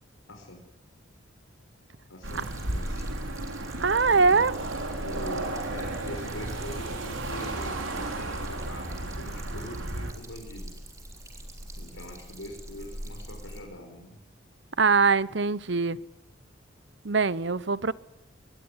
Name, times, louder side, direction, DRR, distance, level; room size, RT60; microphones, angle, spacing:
voice 1, 0.3-0.6 2.1-3.1 4.7-10.7 11.8-14.2, left 1 dB, 85° left, 5.1 m, -43 dB
sound 1, 2.2-13.6, equal, 15° right, 4.0 m, -42 dB
sound 2, 2.2-10.1, right 2 dB, 80° right, 4.0 m, -34 dB
voice 2, 3.8-4.6 14.8-16.0 17.0-17.9, right 4 dB, 60° right, 0.9 m, -22 dB
22.5 x 21.0 x 10.0 m
head